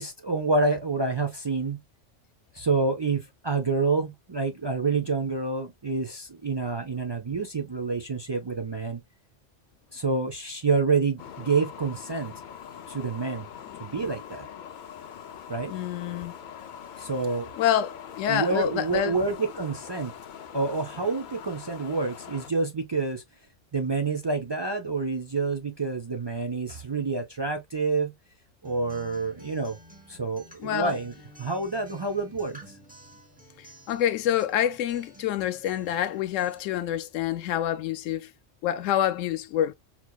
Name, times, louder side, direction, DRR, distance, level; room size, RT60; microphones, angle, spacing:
voice 1, 0.0-1.8 2.5-9.0 9.9-12.3 12.9-13.5 13.8-14.4 15.5-15.7 17.0-17.5 18.3-20.1 20.5-23.2 23.7-28.1 28.6-29.8 30.1-31.1 31.4-32.6, right 4 dB, 40° right, 0.3 m, -28 dB
sound 1, 11.2-22.5, left 8 dB, 60° left, 0.5 m, -43 dB
voice 2, 15.0-15.4 15.7-16.4 17.6-19.2 30.6-31.0 33.6-38.3 38.6-39.7, left 11 dB, 85° left, 1.0 m, -27 dB
Acoustic guitar, 28.6-36.6, equal, 10° right, 0.8 m, -51 dB
4.4 x 2.7 x 2.3 m
omnidirectional pair, 1.3 m